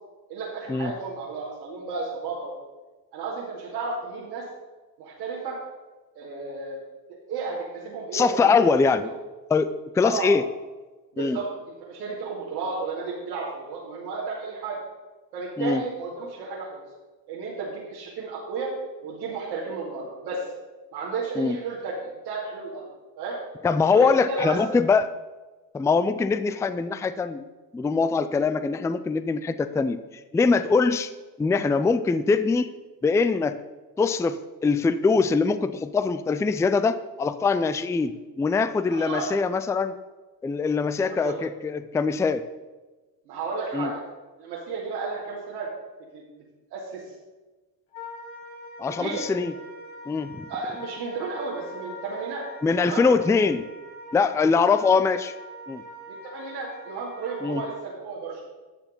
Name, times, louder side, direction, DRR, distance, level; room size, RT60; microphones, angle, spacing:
voice 1, 0.3-2.5 3.1-4.4 5.0-5.6 6.2-6.8 7.3-8.8 10.0-10.3 11.1-14.8 15.3-16.8 17.3-18.7 19.0-20.4 20.9-22.9 23.2-23.4 23.9-24.6 38.9-39.3 41.1-41.5 43.3-44.0 44.4-45.7 46.1-46.2 46.7-47.0 49.0-49.2 50.5-52.4 52.8-53.0 56.1-58.4, right 4 dB, 85° right, -8 dB, 2.5 m, -33 dB
voice 2, 8.1-9.1 9.5-10.4 11.2-11.4 15.6-15.8 21.4-21.6 23.6-25.1 25.7-27.4 27.7-30.0 30.3-31.1 31.4-32.7 33.0-33.6 34.0-40.0 40.4-42.4 43.7-43.9 48.8-49.5 50.1-50.5 52.6-53.6 54.1-55.3 55.7-55.8 57.4-57.7, left 4 dB, 5° left, 13 dB, 0.4 m, -23 dB
Wind instrument woodwind instrument, 47.9-57.8, left 1 dB, 70° left, 3.4 m, -43 dB
11.5 x 6.8 x 5.3 m, 1.2 s
hypercardioid pair, 70°, 49 cm